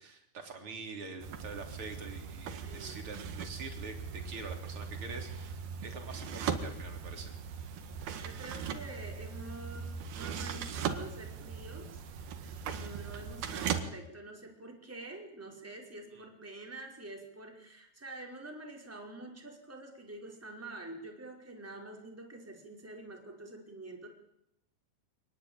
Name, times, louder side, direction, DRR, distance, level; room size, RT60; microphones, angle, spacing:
voice 1, 0.0-7.9 13.1-13.3 16.1-16.3, right 4 dB, 30° right, 4 dB, 4.0 m, -45 dB
sound 1, 1.2-13.8, right 7 dB, 65° right, 3.5 m, -39 dB
voice 2, 2.6-3.1 8.1-12.0 12.7-24.1, right 2 dB, 5° right, 1 dB, 4.4 m, -47 dB
26.5 x 19.5 x 9.0 m, 0.77 s
omnidirectional pair, 5.0 m